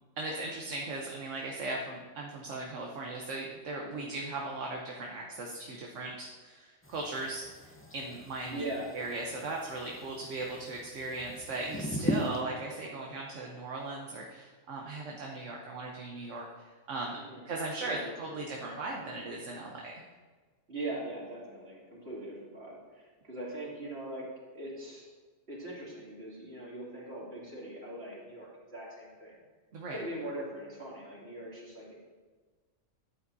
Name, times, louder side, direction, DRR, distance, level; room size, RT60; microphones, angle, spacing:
voice 1, 0.2-8.6 8.9-16.5 16.9-17.2 17.4-20.0 29.7-30.0, right 2 dB, 65° right, -1 dB, 1.3 m, -38 dB
voice 2, 3.8-4.1 8.4-8.9 17.1-17.5 17.8-18.1 18.5-18.7 19.0-19.3 20.7-24.2 24.5-25.0 25.5-29.4 29.9-32.0, right 1 dB, 50° right, -6 dB, 3.1 m, -41 dB
sound 1, 6.8-12.4, equal, 15° left, 0.6 m, -39 dB
13.0 x 8.5 x 2.7 m, 1.4 s
omnidirectional pair, 1.4 m